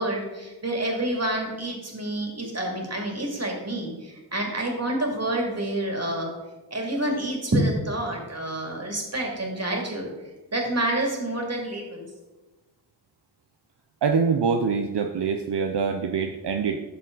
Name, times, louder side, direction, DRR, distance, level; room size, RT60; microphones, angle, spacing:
voice 1, 0.0-6.3 6.7-10.1 10.5-12.1, right 1 dB, 35° right, 0 dB, 2.6 m, -28 dB
voice 2, 14.0-16.8, right 5 dB, 75° right, 5 dB, 0.7 m, -24 dB
12.5 x 7.0 x 3.9 m, 1.1 s
wide cardioid pair, 100°, 42 cm